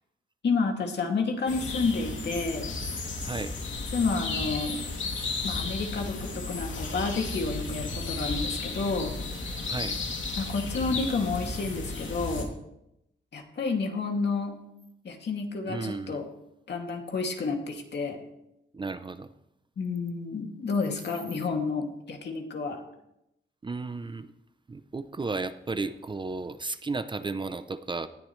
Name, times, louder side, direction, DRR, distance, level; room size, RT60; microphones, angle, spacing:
voice 1, 0.4-2.7 3.9-4.8 5.4-9.2 10.4-12.5 13.3-14.6 15.0-16.3 16.7-18.2 19.8-22.8, left 4 dB, 65° left, 2 dB, 2.4 m, -30 dB
sound 1, 1.5-12.4, left 3 dB, 85° left, 2.7 m, -34 dB
voice 2, 3.2-3.5 9.6-10.0 15.7-16.2 18.7-19.3 23.6-24.3 24.7-28.1, right 3 dB, 25° right, 11 dB, 0.6 m, -34 dB
19.0 x 13.5 x 3.2 m, 0.85 s
wide cardioid pair, 150°, 19 cm